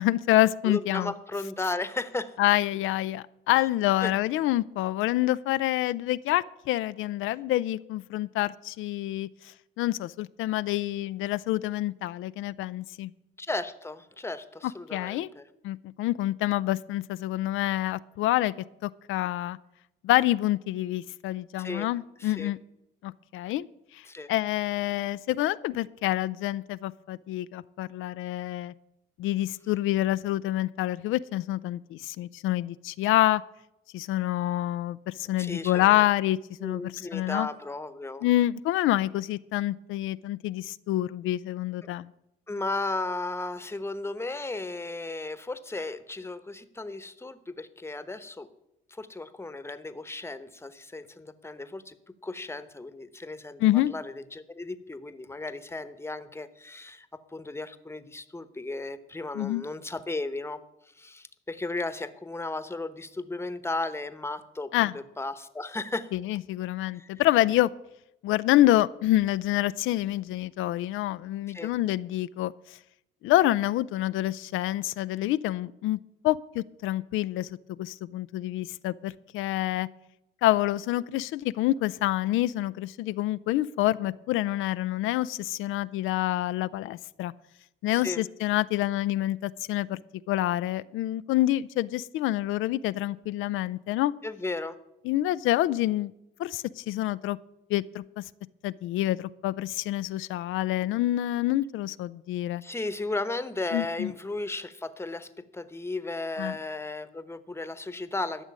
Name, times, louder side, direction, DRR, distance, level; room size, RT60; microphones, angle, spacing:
voice 1, 0.0-1.1 2.4-13.1 14.9-15.3 15.6-18.5 18.8-19.6 20.0-22.6 23.0-23.7 23.9-28.7 29.2-33.4 33.9-37.5 38.2-42.1 53.6-53.9 59.3-59.6 64.7-64.9 66.1-67.7 68.2-72.5 73.2-76.0 76.2-77.5 77.8-79.9 80.4-87.3 87.8-90.0 90.3-94.1 95.0-96.1 96.4-97.4 97.7-98.2 98.6-102.6 103.7-104.1 106.4-106.5, left 15 dB, 85° left, 14 dB, 0.4 m, -27 dB
voice 2, 0.6-2.4 3.5-3.6 4.0-4.1 13.4-15.5 21.6-21.9 22.2-22.5 24.1-24.3 35.4-36.1 36.6-38.2 42.5-48.5 48.9-51.9 52.2-57.1 57.3-60.6 61.0-66.1 66.9-67.1 71.5-71.7 87.9-88.2 94.2-94.8 102.6-108.4, left 2 dB, 10° left, 13 dB, 1.0 m, -35 dB
13.0 x 6.3 x 9.5 m, 0.87 s
cardioid pair, 90°, 20 cm